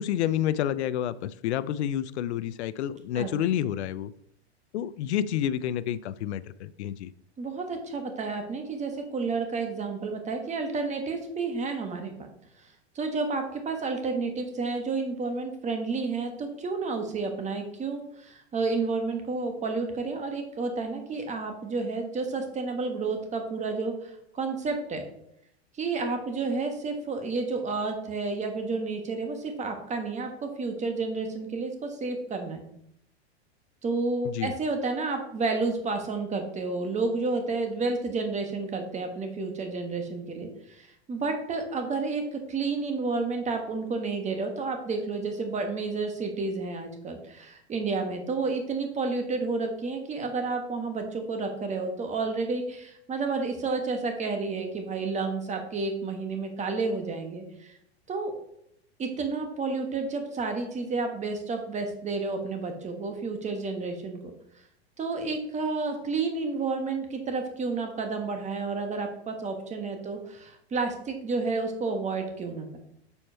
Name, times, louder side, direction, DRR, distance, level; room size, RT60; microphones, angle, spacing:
voice 1, 0.0-4.1 4.7-7.1 34.2-34.5, left 11 dB, 85° left, 16 dB, 0.5 m, -29 dB
voice 2, 7.4-12.3 12.6-12.7 12.9-25.0 25.7-32.6 33.8-57.8 58.1-58.4 59.0-64.3 65.0-72.8, right 3 dB, 20° right, 5 dB, 1.4 m, -31 dB
7.1 x 4.4 x 4.4 m, 0.73 s
hypercardioid pair, 115°, 33 cm